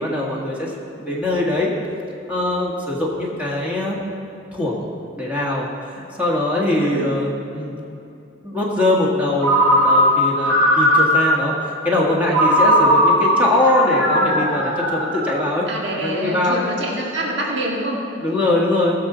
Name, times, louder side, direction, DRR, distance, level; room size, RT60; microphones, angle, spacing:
voice 1, 0.0-1.7 2.3-4.0 4.5-4.9 5.2-7.8 8.4-15.7 16.0-16.6 18.2-18.9, left 1 dB, 5° right, -5 dB, 1.7 m, -22 dB
voice 2, 6.8-7.3 15.7-18.0, right 1 dB, 60° right, -3 dB, 1.9 m, -26 dB
Ringtone, 9.4-11.5 12.3-15.7, equal, 85° right, 2.8 m, -17 dB
19.5 x 6.9 x 5.0 m, 2.8 s
head